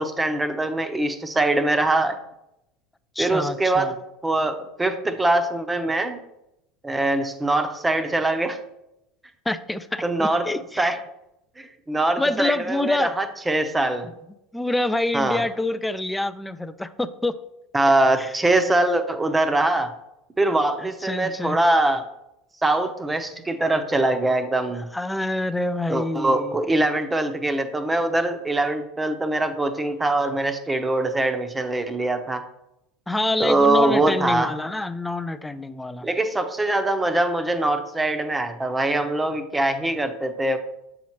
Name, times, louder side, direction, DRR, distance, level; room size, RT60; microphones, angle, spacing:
voice 1, 0.0-2.2 3.2-4.0 4.2-6.2 6.8-8.6 10.0-10.5 10.8-11.0 11.6-14.1 15.1-15.4 17.7-19.9 20.4-22.1 22.6-24.9 25.9-32.4 33.4-34.5 36.0-40.6, right 2 dB, 15° right, 8 dB, 0.8 m, -23 dB
voice 2, 3.2-3.9 9.5-10.9 12.2-13.2 14.5-17.4 18.2-18.3 20.8-21.6 24.9-26.6 33.1-36.1, left 2 dB, 10° left, 12 dB, 0.4 m, -26 dB
7.3 x 5.8 x 3.1 m, 0.85 s
hypercardioid pair, 90°, 0 cm